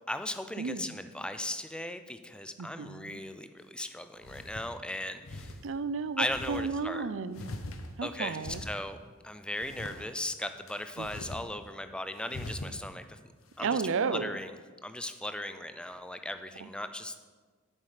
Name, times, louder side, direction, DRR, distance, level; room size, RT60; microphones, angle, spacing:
voice 1, 0.1-5.6 6.2-7.1 8.0-9.0 9.2-13.2 13.6-13.8 14.1-14.5 14.8-17.3, left 1 dB, 5° left, 9 dB, 0.4 m, -37 dB
voice 2, 2.6-3.2 5.6-7.4 8.0-8.6 11.0-11.1 13.6-14.3 16.6-16.7, right 5 dB, 65° right, 13 dB, 0.5 m, -33 dB
sound 1, 3.6-3.7 4.2-4.7 5.2-5.6 6.3-6.7 7.3-8.1 8.4-8.8 9.6-10.0 10.7-11.4 11.7-11.8 12.3-12.8, left 1 dB, 75° left, 0.9 m, -42 dB
8.3 x 7.3 x 5.0 m, 1.4 s
head